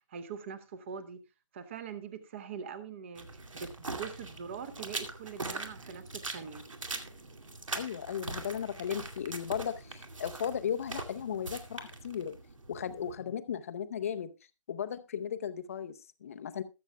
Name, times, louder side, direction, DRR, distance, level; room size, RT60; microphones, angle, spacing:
voice 1, 0.1-1.2 1.5-3.3 3.5-6.6, right 6 dB, 25° right, 0.9 m, -42 dB
sound 1, 3.1-13.1, right 3 dB, 75° right, 2.3 m, -42 dB
voice 2, 7.7-12.3 12.7-14.3 14.7-16.6, left 8 dB, 25° left, 0.6 m, -36 dB
21.0 x 7.2 x 2.2 m
figure-of-eight pair, 160°, 16 cm